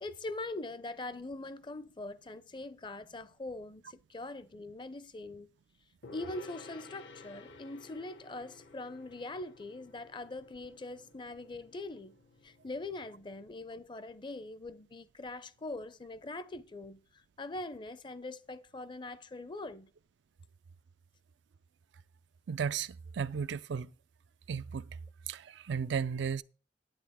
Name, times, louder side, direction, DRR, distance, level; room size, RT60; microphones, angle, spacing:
voice 1, 0.0-5.5 6.1-12.2 12.4-19.9, left 2 dB, 25° left, 0.6 m, -42 dB
Gong, 6.0-13.5, left 3 dB, 80° left, 1.3 m, -54 dB
voice 2, 22.5-23.9 24.5-24.9 25.3-26.4, right 6 dB, 75° right, 0.4 m, -34 dB
10.5 x 9.0 x 3.5 m
head